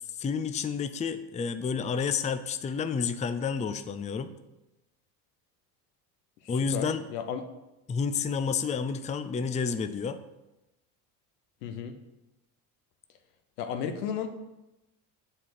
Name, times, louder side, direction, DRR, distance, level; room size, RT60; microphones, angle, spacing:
voice 1, 0.2-4.3 6.5-7.0 7.9-10.2, left 6 dB, 15° left, 11 dB, 0.4 m, -30 dB
voice 2, 6.4-7.4 11.6-11.9 13.6-14.3, left 7 dB, 80° left, 7 dB, 1.0 m, -34 dB
7.5 x 4.1 x 6.6 m, 0.97 s
hypercardioid pair, 70°, 48 cm